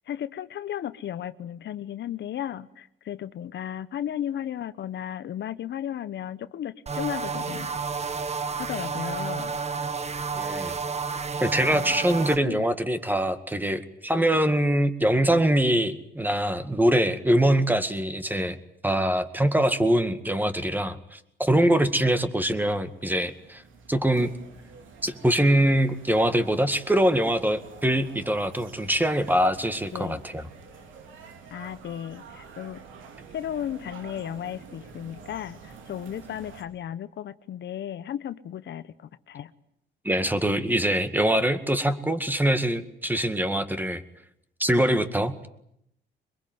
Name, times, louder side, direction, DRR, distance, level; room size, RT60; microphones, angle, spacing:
voice 1, 0.1-7.8 8.6-9.6 11.1-11.3 11.7-12.6 14.2-14.4 29.9-30.2 31.5-32.8 33.3-39.5, left 10 dB, 65° left, 14 dB, 1.0 m, -35 dB
sound 1, 6.9-12.4, right 5 dB, 35° right, 1.4 m, -31 dB
voice 2, 10.3-10.7 11.4-18.6 18.8-23.6 23.9-24.3 25.0-30.5 40.0-44.0 44.6-45.5, right 1 dB, 10° right, 11 dB, 2.0 m, -23 dB
sound 2, 22.4-36.6, right 5 dB, 80° right, 3.3 m, -48 dB
23.0 x 21.5 x 9.4 m, 0.74 s
cardioid pair, 90°, 20 cm